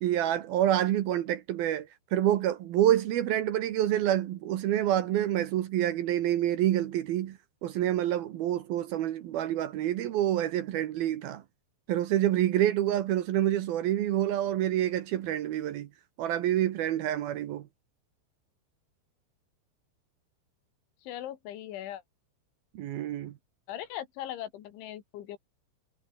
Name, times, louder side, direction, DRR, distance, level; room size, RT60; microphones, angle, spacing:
voice 1, 0.0-11.4 11.9-15.9 16.2-17.7 22.7-23.3, right 12 dB, 70° right, 2.7 m, -27 dB
voice 2, 21.0-22.0 23.7-25.4, left 12 dB, 85° left, 4.4 m, -39 dB
omnidirectional pair, 5.3 m